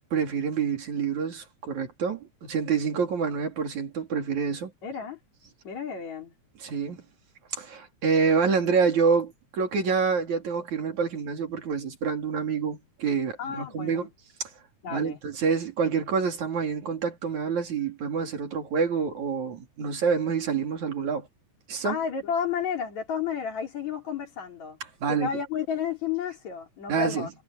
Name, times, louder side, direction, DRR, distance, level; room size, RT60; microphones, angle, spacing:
voice 1, 0.1-4.7 6.6-7.0 7.5-14.1 14.9-21.3 21.7-22.0 25.0-25.3 26.9-27.3, right 6 dB, 75° right, 4.6 m, -27 dB
voice 2, 4.8-5.2 5.6-6.3 13.4-14.1 14.8-15.2 21.8-24.8 25.1-27.3, left 7 dB, 70° left, 4.8 m, -32 dB
omnidirectional pair, 3.3 m